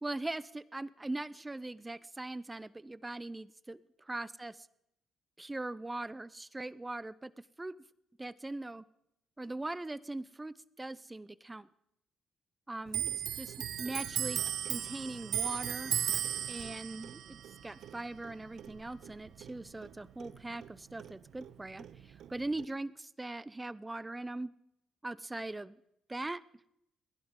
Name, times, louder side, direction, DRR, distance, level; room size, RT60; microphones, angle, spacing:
voice 1, 0.0-4.7 5.4-7.3 7.6-7.8 8.2-8.9 9.4-11.7 12.7-13.5 13.8-14.4 14.6-15.9 16.5-24.5 25.0-25.8 26.1-26.4, right 2 dB, 15° right, 17 dB, 0.6 m, -41 dB
Clock, 12.9-19.9 20.2-21.5 21.8-22.6, right 10 dB, 75° right, 0.6 m, -37 dB
29.5 x 11.0 x 3.8 m, 0.79 s
cardioid pair, 90°, 0 cm